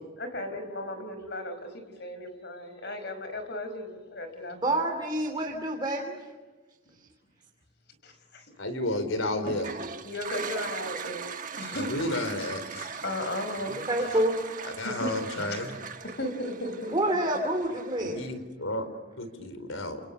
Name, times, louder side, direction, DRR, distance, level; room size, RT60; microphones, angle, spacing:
voice 1, 0.2-4.8 8.0-8.4 9.4-9.6 10.0-11.2 11.5-11.9 12.7-13.8 14.8-16.9, left 1 dB, 55° left, 8 dB, 5.0 m, -36 dB
voice 2, 4.5-6.1 13.8-14.4 16.9-18.2, right 1 dB, 20° right, 0 dB, 3.0 m, -27 dB
voice 3, 8.6-9.7 11.7-12.9 14.8-15.7 18.0-18.9 19.2-20.0, left 1 dB, 80° left, 10 dB, 4.4 m, -32 dB
Toilet flush, 9.4-18.3, right 6 dB, 40° right, 1.3 m, -40 dB
30.0 x 29.0 x 6.8 m, 1.3 s
head